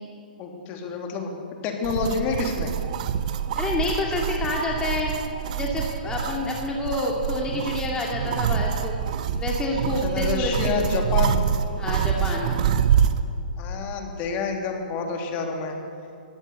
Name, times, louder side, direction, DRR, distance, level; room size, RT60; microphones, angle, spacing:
voice 1, 0.4-1.3 1.6-2.7 10.0-11.4 13.6-15.7, left 5 dB, 30° left, 2 dB, 3.3 m, -28 dB
sound 1, 1.8-13.2, right 8 dB, 50° right, 1.3 m, -26 dB
voice 2, 3.6-5.1 5.5-8.9 9.4-11.0 11.8-12.6, left 2 dB, 15° left, -2 dB, 2.5 m, -28 dB
20.0 x 16.0 x 8.3 m, 2.5 s
hypercardioid pair, 130°, 5 cm